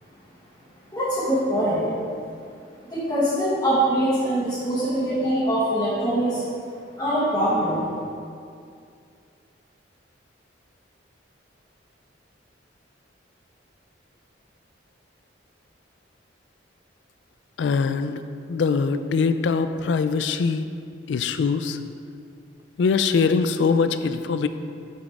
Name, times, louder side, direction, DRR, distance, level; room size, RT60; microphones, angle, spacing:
voice 1, 0.9-1.9 2.9-6.4 7.0-7.8, right 1 dB, 15° left, -13 dB, 1.6 m, -23 dB
voice 2, 17.6-18.2 18.5-20.7 21.1-21.8 22.8-24.5, left 5 dB, 65° left, 10 dB, 0.3 m, -22 dB
6.3 x 6.1 x 3.6 m, 2.4 s
head